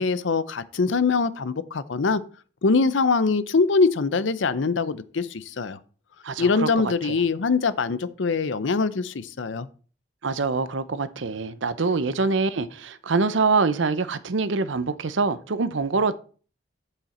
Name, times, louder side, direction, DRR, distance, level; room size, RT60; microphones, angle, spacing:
voice 1, 0.0-2.2 2.6-5.8 6.4-9.7, left 4 dB, 80° left, 0.6 m, -23 dB
voice 2, 6.2-7.2 10.2-16.2, right 4 dB, 80° right, 0.7 m, -25 dB
7.9 x 7.5 x 4.3 m
head